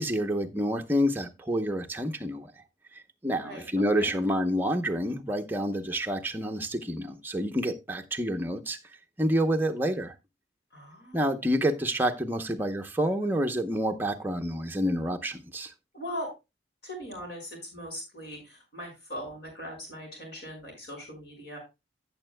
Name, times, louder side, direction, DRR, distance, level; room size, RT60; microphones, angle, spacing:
voice 1, 0.0-2.5 3.2-8.8 9.2-10.1 11.1-15.7, equal, 10° right, 0.8 m, -28 dB
voice 2, 3.3-3.7 4.0-4.1 10.7-11.2 15.9-16.3 16.8-21.6, equal, 65° left, 5.7 m, -40 dB
15.5 x 6.8 x 2.2 m
head